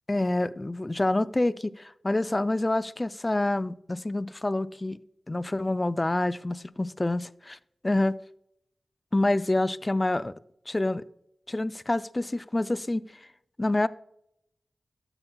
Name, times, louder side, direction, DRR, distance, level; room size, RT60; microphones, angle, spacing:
voice 1, 0.1-5.0 5.3-7.6 7.8-8.2 9.1-10.3 10.7-11.0 11.5-13.0 13.6-13.9, left 2 dB, 25° left, 0.3 m, -27 dB
12.5 x 6.8 x 2.3 m
wide cardioid pair, 80°, 0 cm